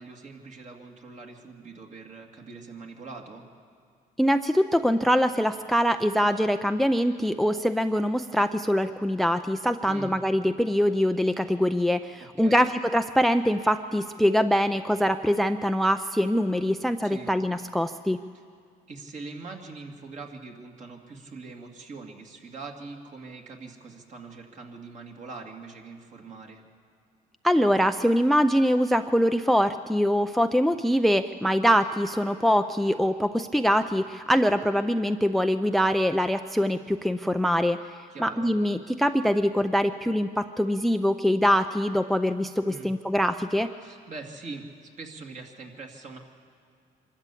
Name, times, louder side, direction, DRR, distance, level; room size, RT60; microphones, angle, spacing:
voice 1, 0.0-3.4 9.8-10.1 12.2-12.7 17.0-17.3 18.9-26.6 38.1-38.5 42.7-42.9 43.8-46.2, right 4 dB, 45° right, 1 dB, 2.5 m, -42 dB
voice 2, 4.2-18.2 27.4-37.8 38.2-43.7, equal, ahead, 10 dB, 0.4 m, -23 dB
24.5 x 13.0 x 8.4 m, 2.3 s
cardioid pair, 110°, 17 cm